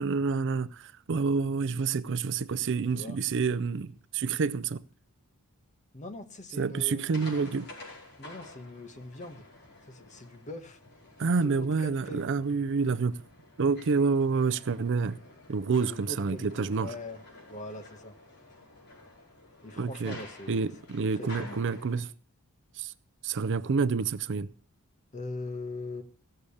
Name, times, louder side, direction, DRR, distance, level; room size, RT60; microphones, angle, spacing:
voice 1, 0.0-4.8 6.6-7.7 11.2-13.2 13.6-15.2 15.5-16.9 19.8-20.2 20.5-22.1 22.8-22.9 23.2-24.5, right 5 dB, 55° right, 0.5 m, -28 dB
voice 2, 5.9-7.1 8.2-9.4 9.9-10.8 11.4-12.3 15.8-17.2 17.5-18.1 19.6-20.7 21.1-21.6 25.1-26.0, left 1 dB, 35° left, 1.2 m, -41 dB
sound 1, 7.0-22.0, left 2 dB, 50° left, 4.8 m, -50 dB
16.0 x 6.7 x 7.1 m
head